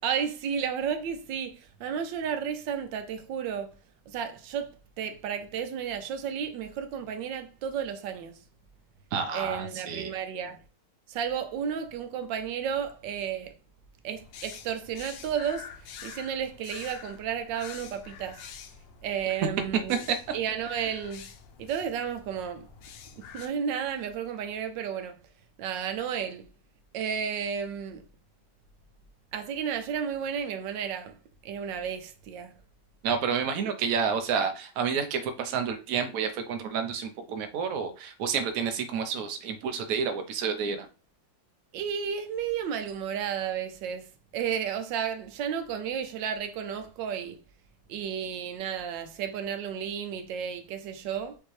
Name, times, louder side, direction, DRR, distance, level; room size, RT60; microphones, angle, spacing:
voice 1, 0.0-3.7 4.1-8.4 9.3-10.6 11.1-13.5 14.0-18.5 19.0-20.0 20.3-21.3 21.6-22.7 23.1-25.2 25.6-26.5 26.9-28.0 29.3-31.2 31.4-32.6 41.7-47.4 47.9-51.4, right 8 dB, 85° right, 1.3 m, -32 dB
voice 2, 9.1-10.1 19.9-20.2 33.0-40.9, right 6 dB, 60° right, 1.0 m, -29 dB
sound 1, 14.2-23.5, left 7 dB, 90° left, 1.3 m, -47 dB
5.3 x 2.8 x 3.1 m
omnidirectional pair, 1.9 m